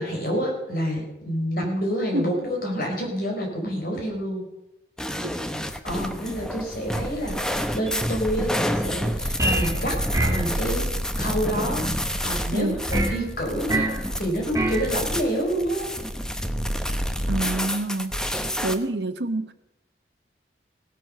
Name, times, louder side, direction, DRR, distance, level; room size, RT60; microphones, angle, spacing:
voice 1, 0.0-4.5 5.8-9.9 10.2-10.9 11.2-15.9, equal, 50° left, -1 dB, 5.1 m, -28 dB
sound 1, 5.0-18.8, equal, 5° left, 0.8 m, -28 dB
sound 2, 9.4-9.8 10.1-10.5 12.9-13.2 13.7-14.0 14.5-14.9, right 1 dB, 20° right, 1.5 m, -24 dB
voice 2, 17.3-18.2 18.6-19.5, right 2 dB, 75° right, 10 dB, 1.1 m, -27 dB
17.0 x 11.0 x 6.7 m, 0.89 s
head